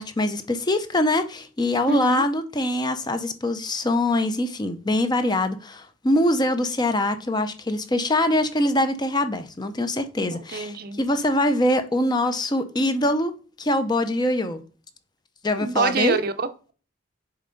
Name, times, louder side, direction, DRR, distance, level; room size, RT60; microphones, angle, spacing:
voice 1, 0.0-13.3 13.6-14.6 15.4-16.2, left 1 dB, 20° left, 0.6 m, -23 dB
voice 2, 1.9-2.2 10.5-11.0 15.6-16.7, right 4 dB, 50° right, 0.6 m, -25 dB
7.0 x 4.2 x 3.8 m
head